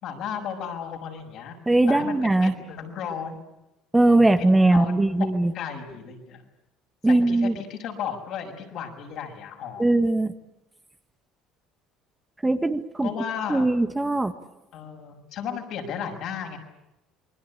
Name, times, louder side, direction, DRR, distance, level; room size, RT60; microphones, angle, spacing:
voice 1, 0.0-1.6 1.9-2.1 2.4-3.4 4.1-6.4 7.0-10.0 13.0-13.7 14.7-16.6, left 7 dB, 65° left, 3 dB, 6.2 m, -34 dB
voice 2, 1.7-2.5 3.9-5.5 7.0-7.5 9.8-10.3 12.4-13.1 13.5-14.3, right 2 dB, 10° right, 8 dB, 1.6 m, -20 dB
28.0 x 21.0 x 8.6 m, 0.93 s
supercardioid pair, 90°, 0 cm